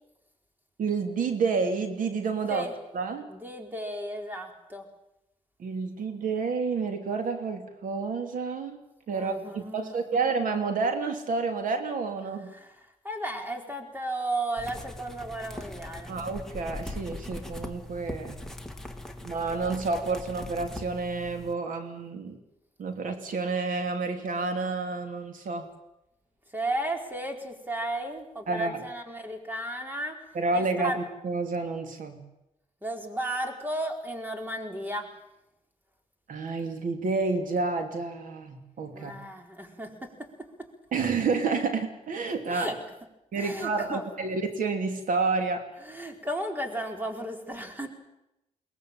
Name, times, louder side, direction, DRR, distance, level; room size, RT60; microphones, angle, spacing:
voice 1, 0.8-2.7 2.9-3.3 5.6-8.8 9.1-12.5 16.1-18.4 19.2-22.4 22.8-25.7 28.5-28.8 30.3-32.3 36.3-39.1 40.9-42.7 43.3-45.6, right 4 dB, 85° right, 6 dB, 3.2 m, -29 dB
voice 2, 3.3-4.9 9.1-9.9 12.5-12.8 13.0-16.1 26.5-30.2 30.5-31.0 32.8-35.1 38.9-40.7 42.5-42.8 43.3-44.0 45.8-47.9, right 1 dB, 15° right, 4 dB, 4.3 m, -34 dB
sound 1, 14.6-21.5, left 1 dB, 5° left, 1.9 m, -40 dB
22.5 x 18.5 x 9.0 m, 0.90 s
cardioid pair, 95°, 13 cm